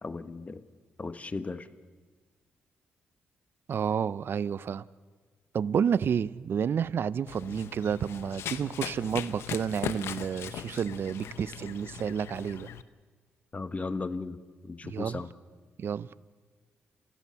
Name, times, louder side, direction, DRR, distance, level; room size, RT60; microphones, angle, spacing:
voice 1, 0.0-0.6 1.0-1.7 13.5-14.4 14.6-15.3, left 3 dB, 35° left, 1.3 m, -36 dB
voice 2, 3.7-4.8 5.5-12.7 14.8-15.2 15.8-16.1, right 7 dB, 60° right, 0.6 m, -30 dB
Run, 7.3-12.8, left 9 dB, 80° left, 0.8 m, -39 dB
28.5 x 15.5 x 7.0 m
supercardioid pair, 60°, 4 cm